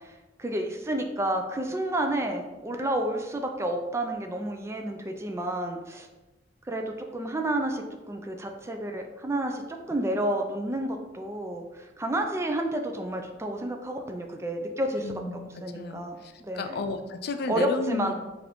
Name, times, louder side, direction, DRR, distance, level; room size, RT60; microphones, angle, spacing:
voice 1, 0.4-6.1 6.7-9.6 9.9-15.2 15.6-16.8 17.5-18.1, right 1 dB, 15° right, 4 dB, 0.4 m, -30 dB
voice 2, 15.0-18.1, left 3 dB, 55° left, 8 dB, 0.4 m, -33 dB
4.9 x 2.6 x 3.0 m, 1.1 s
head